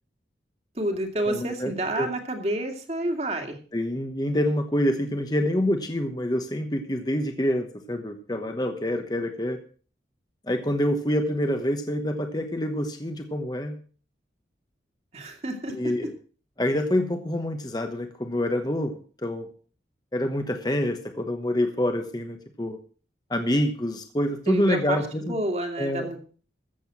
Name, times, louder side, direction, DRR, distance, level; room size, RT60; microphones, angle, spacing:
voice 1, 0.8-3.6 15.1-15.9 24.5-25.0 25.3-26.2, right 1 dB, 35° right, 4 dB, 2.3 m, -29 dB
voice 2, 1.3-1.7 2.0-2.1 3.7-9.6 10.5-13.8 15.7-16.1 16.6-19.5 20.1-22.8 23.3-25.4 25.8-26.1, left 1 dB, 20° left, 6 dB, 1.1 m, -26 dB
14.0 x 7.9 x 6.1 m, 0.41 s
head